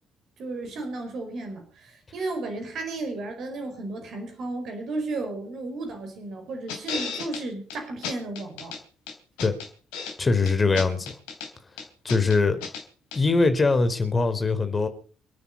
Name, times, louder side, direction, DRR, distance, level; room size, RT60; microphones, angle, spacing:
voice 1, 0.4-8.8, right 2 dB, 55° right, 4.9 m, -34 dB
sound 1, 6.7-7.4 7.7-7.8 8.0-8.8 9.1-10.2 10.5-11.5 11.8-12.8 13.1-13.2, left 5 dB, 70° left, 3.2 m, -34 dB
voice 2, 10.2-11.1 12.0-12.6 13.1-14.9, left 3 dB, 30° left, 3.9 m, -22 dB
28.0 x 9.9 x 4.1 m
figure-of-eight pair, 45°, 0 cm